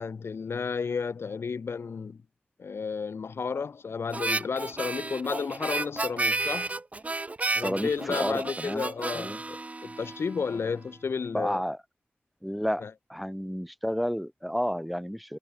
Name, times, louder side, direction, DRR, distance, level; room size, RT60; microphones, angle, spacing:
voice 1, 0.0-2.2 2.6-6.8 7.5-11.6 12.8-12.9, left 5 dB, 85° left, 0.7 m, -32 dB
Harmonica, 4.1-10.6, right 2 dB, 35° right, 1.5 m, -32 dB
voice 2, 7.6-8.8 9.1-9.4 11.3-11.8 12.4-12.8 13.1-15.4, equal, ahead, 0.8 m, -31 dB
wide cardioid pair, 105°, 4 cm